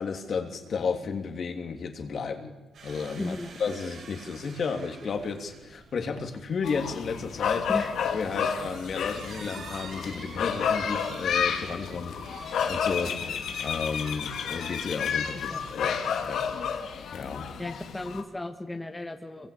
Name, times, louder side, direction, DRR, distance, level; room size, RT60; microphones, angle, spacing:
voice 1, 0.0-2.5 2.8-7.7 8.0-16.0 16.2-16.5 17.1-17.5, left 5 dB, 50° left, 5 dB, 3.1 m, -33 dB
sound 1, 2.7-16.2, right 4 dB, 60° right, 7.4 m, -47 dB
voice 2, 3.2-3.5 7.7-7.9 15.3-15.7 17.6-19.5, left 2 dB, 15° left, 5 dB, 1.5 m, -35 dB
sound 2, 6.6-18.2, left 7 dB, 75° left, 2.4 m, -31 dB
27.0 x 22.5 x 8.7 m, 1.2 s
cardioid pair, 130°, 0 cm